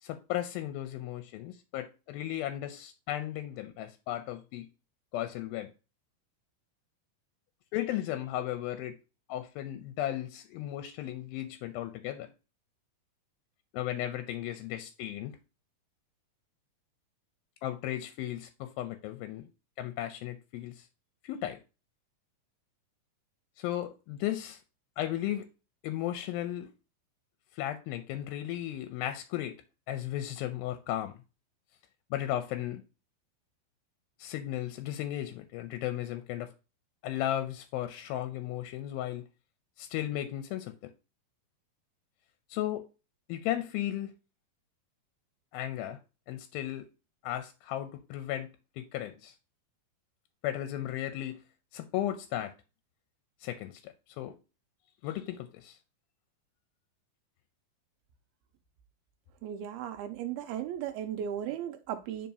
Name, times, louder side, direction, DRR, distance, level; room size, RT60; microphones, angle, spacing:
voice 1, 0.0-4.7 5.1-5.7 7.7-9.0 9.3-12.3 13.7-15.4 17.6-19.5 19.8-20.9 21.2-21.6 23.6-24.6 25.0-25.5 25.8-26.7 27.5-29.6 29.9-31.1 32.1-32.8 34.2-36.5 37.0-39.2 39.8-40.9 42.5-42.9 43.3-44.1 45.5-46.0 46.3-46.9 47.2-49.3 50.4-51.4 51.7-52.5 53.4-54.4 55.0-55.8, left 12 dB, 80° left, 2.3 m, -35 dB
voice 2, 59.4-62.3, right 10 dB, 85° right, 2.4 m, -36 dB
9.3 x 4.5 x 2.8 m
omnidirectional pair, 4.5 m